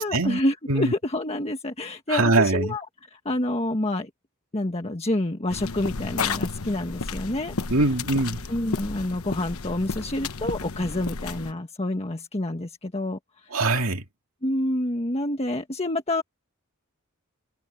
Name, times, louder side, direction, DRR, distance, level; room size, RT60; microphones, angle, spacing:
voice 1, 0.0-2.8 3.1-4.1 4.5-7.6 8.5-13.2 14.4-16.2, left 1 dB, 30° left, 1.5 m, -28 dB
voice 2, 2.1-2.8 7.7-8.4 13.5-14.0, right 2 dB, 70° right, 2.6 m, -22 dB
sound 1, 5.5-11.5, left 4 dB, 85° left, 1.1 m, -32 dB
head